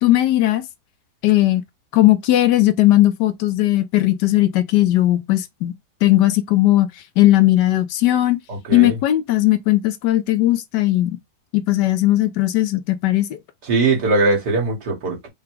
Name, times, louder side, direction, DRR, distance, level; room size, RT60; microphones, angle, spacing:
voice 1, 0.0-0.6 1.2-1.6 1.9-5.7 6.0-6.9 7.2-8.4 8.7-11.2 11.5-13.4, left 15 dB, 90° left, 1.3 m, -17 dB
voice 2, 8.5-9.0 13.7-15.3, right 3 dB, 75° right, 2.4 m, -20 dB
4.9 x 2.2 x 4.7 m
omnidirectional pair, 1.8 m